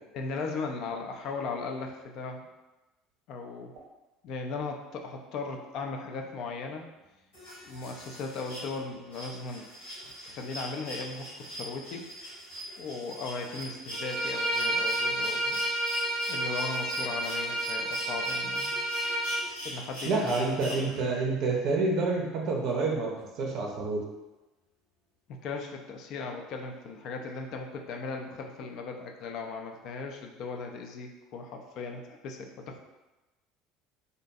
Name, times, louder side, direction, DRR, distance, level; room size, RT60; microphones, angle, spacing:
voice 1, 0.1-2.5 3.3-3.7 4.2-6.8 7.6-9.7 10.0-12.4 12.8-15.6 16.3-18.7 19.6-21.2 25.4-32.8, left 4 dB, 50° left, 2 dB, 0.3 m, -37 dB
sound 1, 7.3-21.2 22.7-22.8, equal, 75° left, 1.1 m, -41 dB
Bowed string instrument, 13.9-19.4, right 1 dB, 5° right, 0.9 m, -30 dB
voice 2, 20.0-23.1 23.4-24.0, right 3 dB, 50° right, 0 dB, 0.5 m, -28 dB
2.5 x 2.2 x 2.6 m, 1.1 s
figure-of-eight pair, 65°, 0 cm